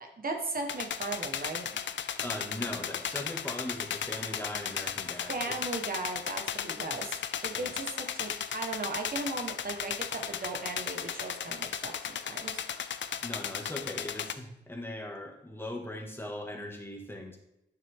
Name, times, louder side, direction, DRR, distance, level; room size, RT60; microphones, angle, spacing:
voice 1, 0.0-1.7 5.3-7.2 7.4-12.6, right 3 dB, 50° right, 3 dB, 1.5 m, -37 dB
sound 1, 0.7-14.3, left 8 dB, 80° left, 0.5 m, -36 dB
voice 2, 2.2-5.6 7.5-7.8 13.2-17.4, left 1 dB, 10° left, 1 dB, 1.9 m, -39 dB
9.1 x 6.6 x 3.7 m, 0.86 s
wide cardioid pair, 80°, 19 cm